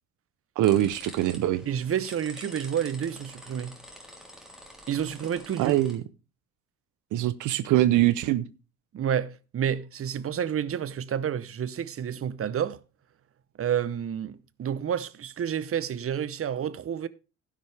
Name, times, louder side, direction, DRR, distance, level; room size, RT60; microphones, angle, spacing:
sound 1, 0.6-6.0, equal, ahead, 3.1 m, -47 dB
voice 1, 0.6-1.6 5.6-6.0 7.1-8.5, right 14 dB, 85° right, 0.7 m, -23 dB
voice 2, 1.7-3.7 4.9-5.8 8.9-12.8 13.6-17.1, right 9 dB, 50° right, 0.8 m, -30 dB
12.0 x 10.0 x 3.4 m
cardioid pair, 90°, 30 cm